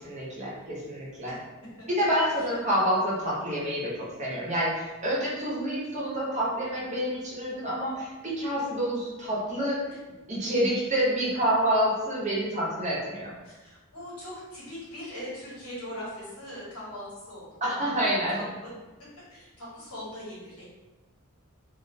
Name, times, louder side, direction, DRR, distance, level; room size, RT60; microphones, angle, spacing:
voice 1, 0.0-1.3 1.9-9.9 10.3-13.3 17.6-18.4, equal, 30° right, -6 dB, 0.7 m, -28 dB
voice 2, 13.4-18.7 19.3-20.7, left 1 dB, 90° left, -8 dB, 1.3 m, -41 dB
2.4 x 2.0 x 2.6 m, 1.2 s
head